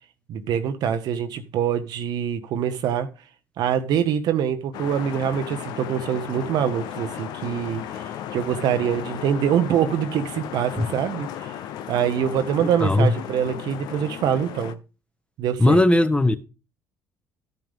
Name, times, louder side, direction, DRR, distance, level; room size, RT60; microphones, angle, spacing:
voice 1, 0.3-3.1 3.6-11.5 11.9-14.8 15.4-15.8, right 9 dB, 70° right, 0.7 m, -24 dB
sound 1, 4.7-14.7, left 10 dB, 75° left, 0.6 m, -35 dB
voice 2, 12.6-13.1 15.6-16.4, left 1 dB, 15° left, 1.0 m, -18 dB
12.5 x 5.4 x 3.6 m
supercardioid pair, 60°, 7 cm